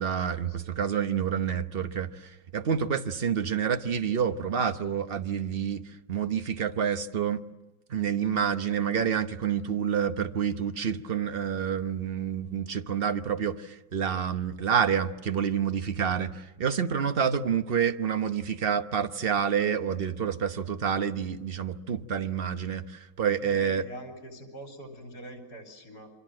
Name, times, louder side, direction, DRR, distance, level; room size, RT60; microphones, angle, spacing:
voice 1, 0.0-5.8 6.1-7.4 7.9-23.8, right 7 dB, 40° right, 9 dB, 1.0 m, -28 dB
voice 2, 23.4-26.1, right 1 dB, 60° left, 2 dB, 4.3 m, -44 dB
28.0 x 24.0 x 7.7 m, 1.0 s
omnidirectional pair, 1.9 m